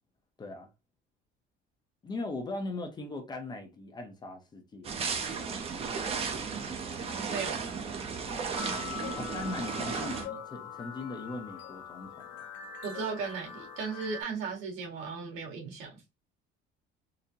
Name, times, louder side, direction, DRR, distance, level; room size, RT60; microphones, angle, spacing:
voice 1, 2.0-4.9 9.2-12.5, left 2 dB, 20° left, 0.7 m, -39 dB
sound 1, 4.8-10.3, right 5 dB, 30° right, 0.6 m, -34 dB
voice 2, 7.3-7.6 12.8-16.0, right 5 dB, 85° right, 1.8 m, -36 dB
sound 2, 8.5-14.2, left 7 dB, 70° left, 1.1 m, -42 dB
3.9 x 2.7 x 2.7 m
cardioid pair, 170°, 20 cm